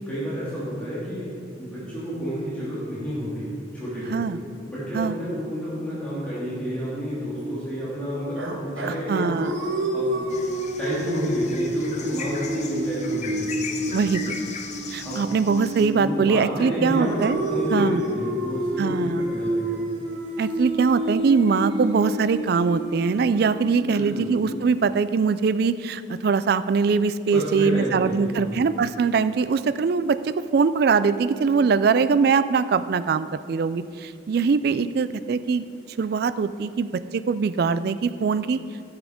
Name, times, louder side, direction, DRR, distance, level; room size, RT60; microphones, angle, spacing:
voice 1, 0.1-1.3 1.6-4.2 4.7-9.3 9.9-10.3 10.8-14.0 15.0-15.3 15.9-19.8 23.9-24.3 27.3-28.5, equal, 5° left, -11 dB, 2.9 m, -30 dB
sound 1, 8.4-16.4 17.0-25.0, right 1 dB, 75° right, 1.1 m, -30 dB
voice 2, 9.1-9.5 13.9-14.6 14.9-17.4 17.7-18.0 18.8-19.3 20.4-35.6 36.0-38.6, right 5 dB, 50° right, 14 dB, 0.3 m, -22 dB
sound 2, 10.3-15.9, left 5 dB, 35° left, 0.7 m, -37 dB
11.0 x 7.3 x 5.0 m, 2.4 s
head